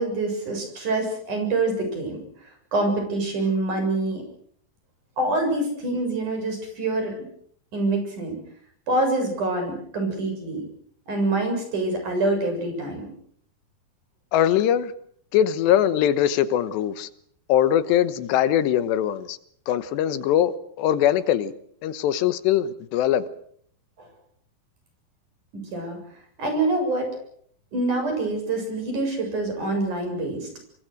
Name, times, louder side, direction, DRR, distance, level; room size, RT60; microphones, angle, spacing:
voice 1, 0.0-2.2 2.7-4.2 5.2-7.2 7.7-8.4 8.9-10.6 11.1-13.1 24.0-24.1 25.5-26.0 26.4-27.1 27.7-30.5, right 2 dB, 45° right, 4 dB, 8.6 m, -25 dB
voice 2, 14.3-14.9 15.3-17.1 17.5-19.4 19.7-21.5 21.8-23.3, left 10 dB, 90° left, 13 dB, 3.4 m, -21 dB
26.5 x 23.5 x 6.5 m, 0.64 s
omnidirectional pair, 4.8 m